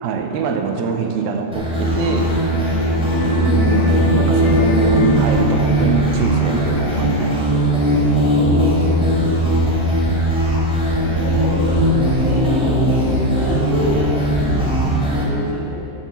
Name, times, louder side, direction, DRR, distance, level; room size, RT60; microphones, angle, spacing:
voice 1, 0.0-2.3 3.6-7.5, right 5 dB, 80° right, 4 dB, 2.5 m, -23 dB
sound 1, 1.5-15.2, equal, ahead, 1.9 m, -18 dB
sound 2, 2.1-7.4, left 2 dB, 80° left, 3.0 m, -27 dB
voice 2, 3.1-4.2 8.4-9.9 10.9-11.6 12.2-15.8, left 1 dB, 60° right, -14 dB, 4.2 m, -28 dB
11.0 x 7.3 x 7.2 m, 2.9 s
omnidirectional pair, 4.4 m